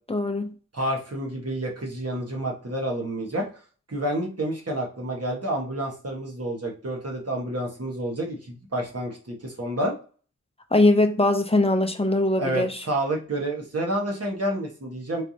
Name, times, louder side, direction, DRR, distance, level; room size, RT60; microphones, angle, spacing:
voice 1, 0.1-0.5 10.7-12.8, left 2 dB, 20° left, 0.6 m, -21 dB
voice 2, 0.7-3.5 3.9-9.9 12.4-15.2, right 1 dB, 50° right, 1.4 m, -29 dB
4.3 x 3.3 x 2.8 m
wide cardioid pair, 85°, 32 cm